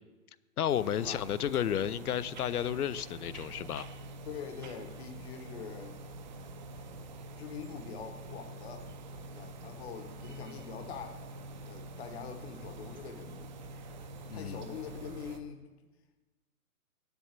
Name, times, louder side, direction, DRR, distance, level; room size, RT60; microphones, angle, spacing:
voice 1, 0.6-3.9 14.3-14.6, left 10 dB, 85° left, 17 dB, 0.6 m, -32 dB
sound 1, 0.7-15.4, right 2 dB, 30° right, 0.6 m, -46 dB
voice 2, 4.3-6.0 7.4-8.9 9.3-11.2 11.7-13.5 14.3-15.7, left 7 dB, 45° left, 5 dB, 1.1 m, -44 dB
7.7 x 7.0 x 7.4 m, 1.2 s
hypercardioid pair, 145°, 44 cm